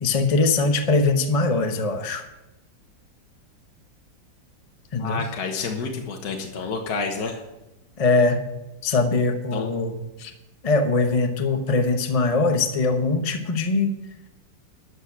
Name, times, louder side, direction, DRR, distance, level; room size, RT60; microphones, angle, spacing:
voice 1, 0.0-2.3 4.9-5.3 8.0-8.4 8.8-10.3 10.6-14.0, left 3 dB, 30° left, 6 dB, 0.7 m, -22 dB
voice 2, 5.0-7.4 9.5-9.7, left 4 dB, 60° left, 2 dB, 1.7 m, -29 dB
12.5 x 6.4 x 7.3 m, 0.96 s
omnidirectional pair, 2.0 m